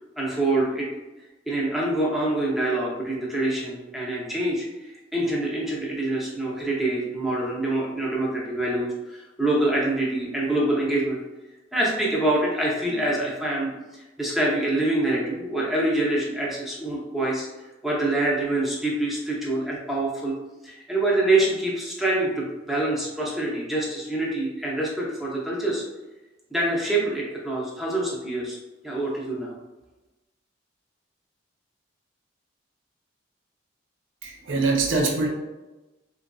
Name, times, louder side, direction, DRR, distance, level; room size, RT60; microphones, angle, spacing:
voice 1, 0.2-0.9 1.5-11.2 11.7-20.3 20.6-25.8 26.5-28.6 28.8-29.5, right 2 dB, ahead, -5 dB, 0.6 m, -25 dB
voice 2, 34.2-35.3, right 3 dB, 80° right, 0 dB, 0.5 m, -23 dB
3.7 x 2.6 x 2.2 m, 1.1 s
head